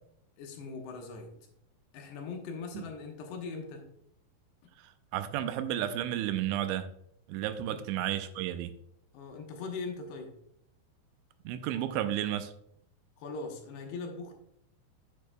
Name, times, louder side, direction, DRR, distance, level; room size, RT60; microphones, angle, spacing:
voice 1, 0.4-1.3 1.9-3.9 7.7-7.8 9.1-10.3 13.2-14.3, left 4 dB, 75° left, 2 dB, 3.0 m, -40 dB
voice 2, 5.1-6.9 7.3-8.7 11.5-12.5, right 11 dB, 85° right, 10 dB, 2.9 m, -32 dB
8.6 x 8.4 x 2.2 m, 0.72 s
omnidirectional pair, 5.2 m